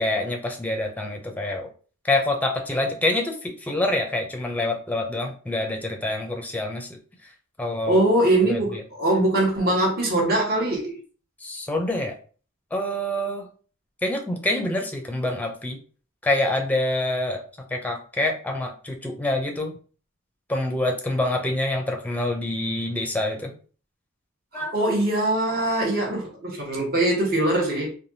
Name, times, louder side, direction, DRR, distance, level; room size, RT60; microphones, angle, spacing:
voice 1, 0.0-1.7 2.0-6.9 7.6-8.0 8.4-8.8 11.4-12.2 12.7-13.5 14.0-15.8 16.2-17.4 17.7-19.7 20.5-23.5 24.5-24.9, left 1 dB, 10° left, 0.5 m, -26 dB
voice 2, 7.9-11.0 24.5-27.9, right 1 dB, 50° right, 1.1 m, -22 dB
3.3 x 2.3 x 2.7 m
head